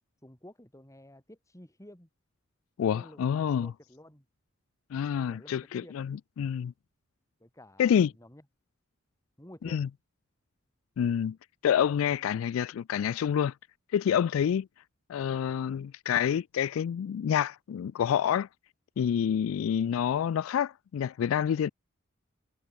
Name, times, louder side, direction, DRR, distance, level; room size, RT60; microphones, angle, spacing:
voice 1, 0.2-2.1 2.9-4.3 5.3-5.9 7.4-8.4 9.4-9.8, left 1 dB, 15° left, 3.6 m, -52 dB
voice 2, 2.8-3.7 4.9-6.7 7.8-8.1 9.6-9.9 11.0-11.4 11.6-13.5 13.9-14.7 15.1-18.5 19.0-21.7, left 8 dB, 85° left, 0.3 m, -28 dB
head